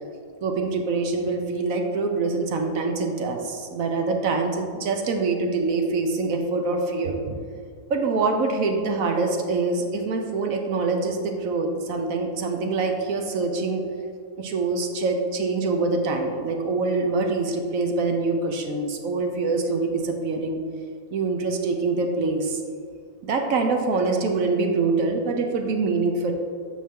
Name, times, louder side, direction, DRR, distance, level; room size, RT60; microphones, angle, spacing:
voice 1, 0.4-7.4 7.9-13.8 14.4-20.6 21.1-22.6 23.2-26.3, right 3 dB, 65° right, 3 dB, 1.1 m, -25 dB
8.5 x 5.6 x 3.6 m, 2.1 s
omnidirectional pair, 1.7 m